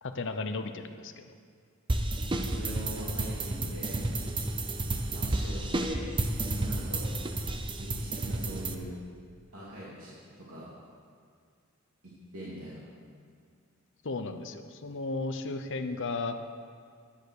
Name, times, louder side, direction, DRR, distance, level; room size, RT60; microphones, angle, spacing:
voice 1, 0.0-1.3 14.0-16.4, left 3 dB, 60° left, 8 dB, 0.8 m, -35 dB
sound 1, 1.9-8.7, right 2 dB, 25° right, 0.7 m, -31 dB
voice 2, 2.4-4.0 5.1-6.0 6.5-7.1 7.8-8.9 9.5-10.7 12.0-12.8, right 1 dB, 80° right, -8 dB, 2.7 m, -42 dB
11.0 x 10.0 x 6.5 m, 2.1 s
head